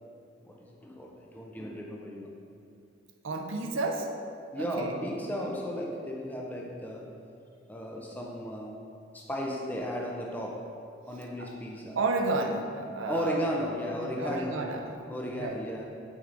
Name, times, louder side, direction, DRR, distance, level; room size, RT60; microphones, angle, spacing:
voice 1, 0.4-2.4 4.5-7.2 7.7-8.8 9.1-10.8 11.1-12.0 13.1-14.8 15.1-15.9, equal, 10° left, -1 dB, 0.4 m, -35 dB
voice 2, 3.2-4.1 4.6-4.9 11.4-11.5 12.0-13.4 13.9-14.9 15.4-15.6, right 3 dB, 75° right, 4 dB, 0.6 m, -31 dB
9.4 x 4.7 x 2.5 m, 2.5 s
head